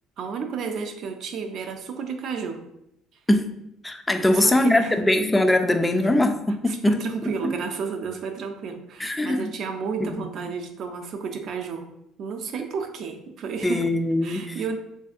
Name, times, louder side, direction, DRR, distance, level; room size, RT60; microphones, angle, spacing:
voice 1, 0.2-2.6 4.1-4.9 6.7-11.9 12.2-13.9 14.2-14.8, right 5 dB, 60° right, 5 dB, 0.4 m, -32 dB
voice 2, 3.8-7.0 7.3-7.4 9.0-9.6 10.0-10.5 13.6-14.6, left 1 dB, 10° left, 7 dB, 0.3 m, -22 dB
3.4 x 2.6 x 2.4 m, 0.80 s
supercardioid pair, 90°, 0 cm